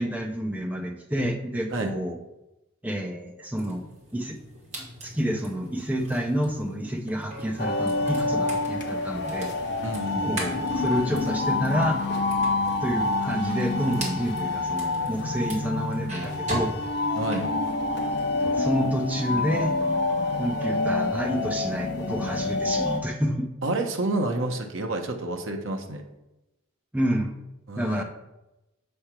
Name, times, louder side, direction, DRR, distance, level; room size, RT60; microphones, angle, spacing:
voice 1, 0.0-2.2 2.8-3.9 4.1-4.4 4.8-9.5 10.2-12.0 12.8-16.7 18.5-19.7 20.3-23.5 26.9-27.3 27.8-28.0, equal, 5° right, 2 dB, 0.6 m, -29 dB
sound 1, 3.6-18.7 19.0-20.7, right 1 dB, 30° right, 2.0 m, -40 dB
sound 2, 7.6-23.0, left 2 dB, 50° left, 0.7 m, -27 dB
voice 2, 9.8-10.4 17.1-17.5 23.6-26.0 27.7-28.0, right 2 dB, 65° right, 3 dB, 0.9 m, -29 dB
7.0 x 3.3 x 5.8 m, 0.94 s
head